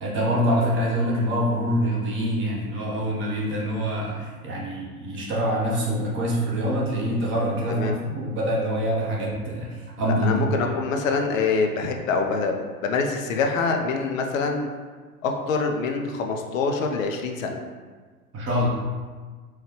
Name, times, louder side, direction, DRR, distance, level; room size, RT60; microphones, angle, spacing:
voice 1, 0.0-10.5 18.3-18.7, equal, 25° right, -4 dB, 1.0 m, -25 dB
voice 2, 7.7-8.0 10.1-14.7 15.2-17.6, left 4 dB, 65° left, 3 dB, 0.6 m, -25 dB
4.5 x 2.3 x 3.1 m, 1.4 s
figure-of-eight pair, 90°, 44 cm